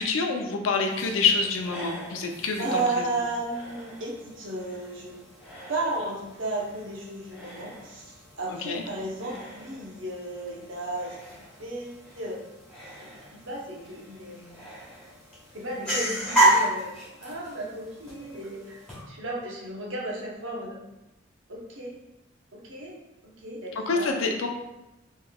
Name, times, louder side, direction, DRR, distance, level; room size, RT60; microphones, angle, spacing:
voice 1, 0.0-3.0 8.5-8.8 23.9-24.5, left 4 dB, 85° left, 3 dB, 0.5 m, -26 dB
sound 1, 0.9-19.0, right 1 dB, 5° left, 1.4 m, -33 dB
voice 2, 2.6-5.2 5.7-8.1 8.4-12.4 13.3-14.7 15.5-16.9 17.2-20.8 21.5-21.9 22.7-22.9 23.4-24.2, right 2 dB, 75° right, -3 dB, 0.9 m, -34 dB
3.4 x 3.1 x 2.3 m, 0.95 s
head